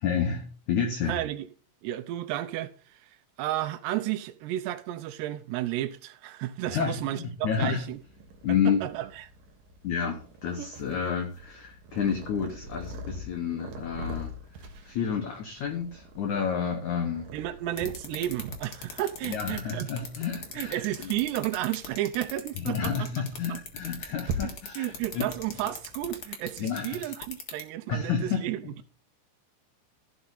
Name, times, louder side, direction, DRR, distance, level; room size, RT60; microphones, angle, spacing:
voice 1, 0.0-1.2 6.7-7.8 8.4-8.8 9.8-14.3 14.8-17.3 19.3-21.1 22.6-25.2 26.6-27.1 27.9-28.4, left 7 dB, 90° left, 1.7 m, -30 dB
voice 2, 1.1-1.5 1.8-3.1 3.4-8.0 8.5-9.2 17.3-19.9 20.5-23.2 24.4-28.7, right 14 dB, 80° right, 2.7 m, -32 dB
Purr, 7.6-26.3, right 1 dB, 65° right, 2.7 m, -43 dB
sound 1, 17.8-27.6, left 6 dB, 55° left, 1.4 m, -38 dB
15.5 x 6.3 x 4.0 m
omnidirectional pair, 5.3 m